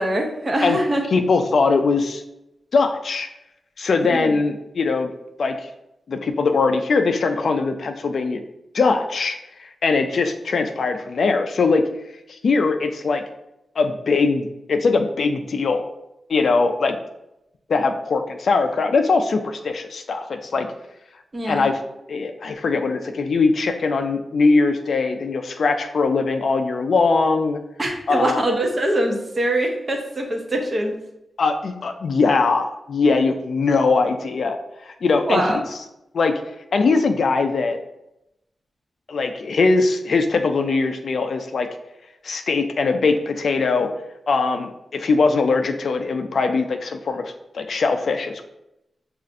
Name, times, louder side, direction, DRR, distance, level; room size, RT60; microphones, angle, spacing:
voice 1, 0.0-1.1 4.1-4.3 21.3-21.7 27.8-30.9 35.2-35.6, right 1 dB, 30° right, 2 dB, 0.6 m, -23 dB
voice 2, 1.1-2.2 2.7-3.3 3.8-5.1 5.4-5.7 6.1-8.4 8.7-11.8 12.3-13.2 13.8-15.8 16.3-17.0 17.7-20.7 21.5-21.8 22.1-27.6 28.1-28.4 31.4-35.5 36.1-36.3 36.7-37.8 39.1-41.7 42.2-43.9 44.3-48.4, left 4 dB, 60° left, 6 dB, 0.3 m, -21 dB
6.3 x 2.4 x 2.5 m, 0.87 s
wide cardioid pair, 150°, 0 cm